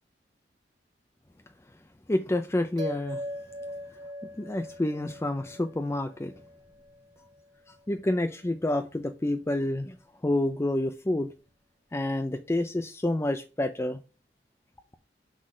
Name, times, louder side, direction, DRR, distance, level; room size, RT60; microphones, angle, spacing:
voice 1, 2.1-3.2 4.4-6.3 7.9-10.0 10.2-11.3 11.9-14.0, left 1 dB, 15° left, 0.5 m, -28 dB
sound 1, 2.8-7.5, equal, 25° right, 1.7 m, -41 dB
6.0 x 4.0 x 6.2 m
head